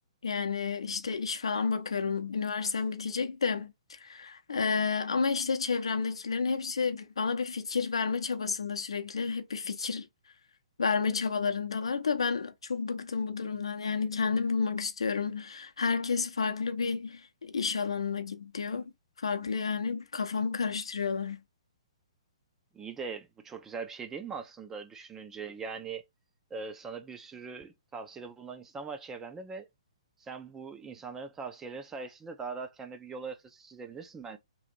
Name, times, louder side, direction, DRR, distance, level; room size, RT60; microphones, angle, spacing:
voice 1, 0.2-10.1 10.8-18.8 19.2-21.4, left 5 dB, 65° left, 0.6 m, -31 dB
voice 2, 22.7-26.0 26.5-29.7 30.2-34.4, right 5 dB, 10° right, 0.4 m, -41 dB
3.1 x 2.4 x 3.9 m
figure-of-eight pair, 120°, 3 cm